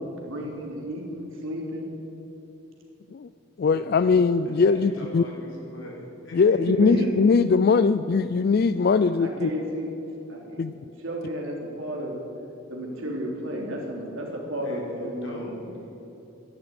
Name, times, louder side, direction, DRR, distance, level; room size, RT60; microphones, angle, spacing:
voice 1, 0.3-1.9 6.6-7.1 7.7-7.8 9.2-9.9 10.3-10.7 11.0-12.2 12.7-15.5, right 1 dB, 70° right, -1 dB, 3.4 m, -32 dB
voice 2, 3.6-5.2 6.3-9.5 10.6-10.7, left 5 dB, 50° left, 13 dB, 0.3 m, -21 dB
voice 3, 4.8-6.6 14.6-16.0, equal, 65° left, -3 dB, 4.3 m, -41 dB
13.0 x 11.0 x 9.6 m, 3.0 s
head